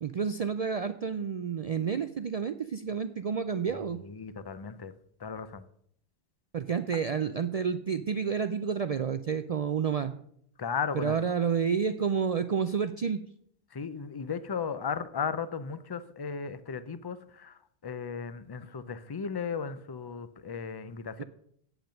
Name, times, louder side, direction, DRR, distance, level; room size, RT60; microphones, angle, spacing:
voice 1, 0.0-4.0 6.5-10.1 10.9-13.2 21.2-21.3, right 6 dB, 70° right, 10 dB, 0.3 m, -30 dB
voice 2, 4.0-4.9 5.2-5.6 10.6-11.2 13.7-21.2, left 6 dB, 35° left, 13 dB, 0.4 m, -36 dB
8.9 x 8.0 x 6.4 m, 0.68 s
omnidirectional pair, 1.2 m